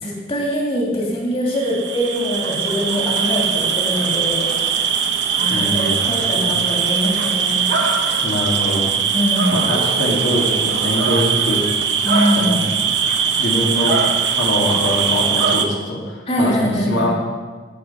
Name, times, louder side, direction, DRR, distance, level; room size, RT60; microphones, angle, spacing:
voice 1, 0.0-4.9 5.4-7.6 9.1-9.6 12.0-12.6 16.3-17.1, equal, 30° left, -3 dB, 2.4 m, -22 dB
sound 1, 1.5-15.7, right 6 dB, 70° right, 1.0 m, -20 dB
voice 2, 5.5-6.5 8.2-8.9 9.5-11.6 12.4-12.7 13.4-14.1 14.3-17.1, equal, 80° left, -2 dB, 2.1 m, -23 dB
10.0 x 8.7 x 5.4 m, 1.4 s
head